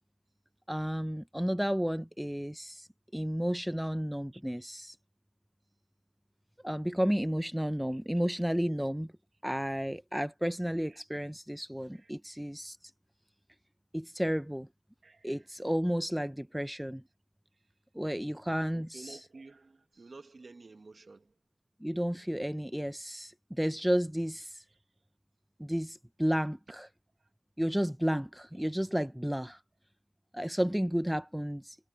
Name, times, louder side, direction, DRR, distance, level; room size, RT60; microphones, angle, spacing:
voice 1, 0.7-2.9 3.1-5.0 6.6-9.1 9.4-12.9 13.9-14.7 15.2-17.0 17.9-19.2 21.8-24.6 25.6-26.9 27.6-29.6 30.3-31.8, equal, 5° right, 0.6 m, -32 dB
voice 2, 7.9-8.7 10.9-11.2 11.9-12.1 15.0-15.6 17.5-17.7 18.6-21.3 24.7-24.8 27.2-27.3, right 3 dB, 45° right, 1.9 m, -53 dB
cardioid pair, 75°, 0 cm